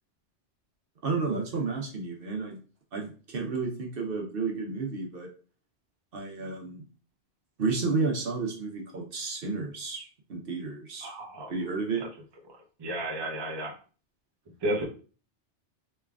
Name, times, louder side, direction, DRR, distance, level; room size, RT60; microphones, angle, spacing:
voice 1, 1.0-2.6 2.9-5.3 6.1-6.8 7.6-11.1 11.5-12.0, right 4 dB, 60° right, 0 dB, 0.9 m, -31 dB
voice 2, 11.0-11.5 12.5-13.7 14.6-14.8, right 1 dB, 30° right, 1 dB, 0.6 m, -32 dB
3.5 x 3.2 x 2.3 m, 0.38 s
omnidirectional pair, 1.2 m